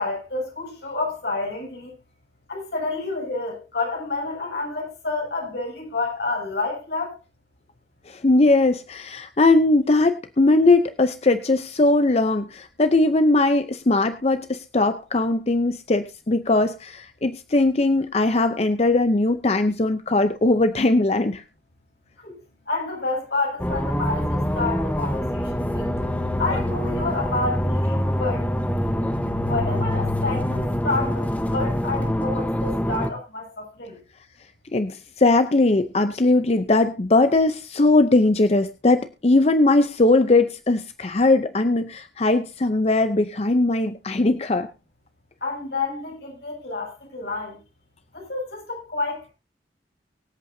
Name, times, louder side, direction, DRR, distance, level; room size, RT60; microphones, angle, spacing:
voice 1, 0.0-1.9 2.5-7.2 22.2-22.4 22.7-25.9 26.4-28.5 29.4-31.3 31.5-34.0 45.4-47.6 48.1-49.3, left 3 dB, 70° left, 7.4 m, -29 dB
voice 2, 8.1-21.4 34.7-44.7, left 2 dB, 35° left, 0.6 m, -20 dB
sound 1, 23.6-33.1, left 1 dB, 10° left, 1.1 m, -25 dB
24.0 x 8.3 x 2.7 m
head